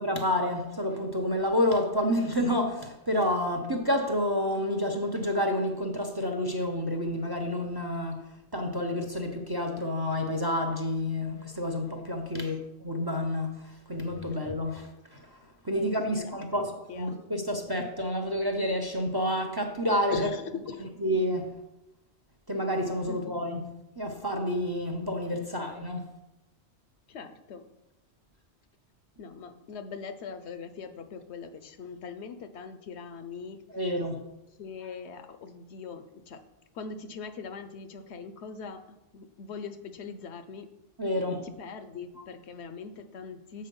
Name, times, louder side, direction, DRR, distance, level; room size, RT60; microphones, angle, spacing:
voice 1, 0.0-15.2 15.6-20.3 21.0-21.5 22.5-23.6 24.0-26.0 33.7-34.3 41.0-41.4, left 1 dB, 25° right, 4 dB, 0.6 m, -29 dB
voice 2, 15.7-17.1 20.1-20.9 23.1-23.3 27.1-27.6 29.2-33.6 34.6-36.4 36.7-40.7 41.1-43.7, left 5 dB, 75° left, 10 dB, 0.9 m, -41 dB
7.6 x 4.6 x 5.3 m, 0.93 s
omnidirectional pair, 1.1 m